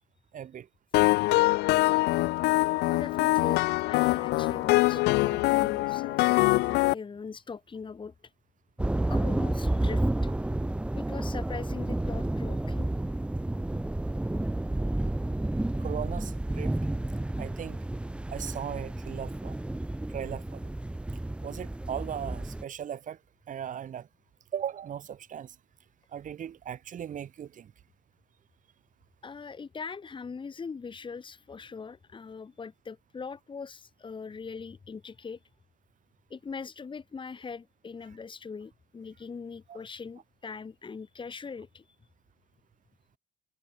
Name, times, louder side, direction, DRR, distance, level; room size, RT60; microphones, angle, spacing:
voice 1, 0.3-0.7 15.8-16.7 17.4-17.8 18.3-19.6 20.1-20.6 21.4-23.2 23.5-24.1 24.5-25.5 26.1-27.7 39.7-39.8, right 9 dB, 50° right, 3.7 m, -37 dB
sound 1, 0.9-6.9, left 21 dB, 85° left, 0.6 m, -24 dB
voice 2, 2.9-8.1 9.1-10.3 11.0-12.9 29.2-35.4 36.3-41.8, left 5 dB, 30° left, 5.3 m, -41 dB
sound 2, 8.8-22.6, right 1 dB, 5° right, 0.7 m, -31 dB
cardioid pair, 110°, 17 cm